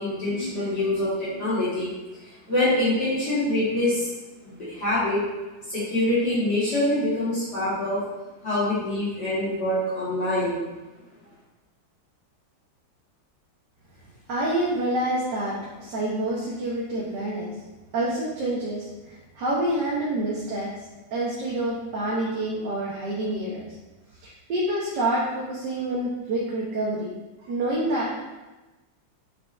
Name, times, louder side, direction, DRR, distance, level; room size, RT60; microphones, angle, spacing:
voice 1, 0.0-1.9 2.2-4.1 4.4-5.2 5.7-8.0 8.4-10.6, left 1 dB, 50° left, -12 dB, 2.8 m, -25 dB
voice 2, 14.3-17.5 17.9-20.7 21.1-23.8 24.2-27.1 27.4-28.3, right 1 dB, 60° right, -5 dB, 1.7 m, -27 dB
8.5 x 4.9 x 3.4 m, 1.1 s
omnidirectional pair, 2.2 m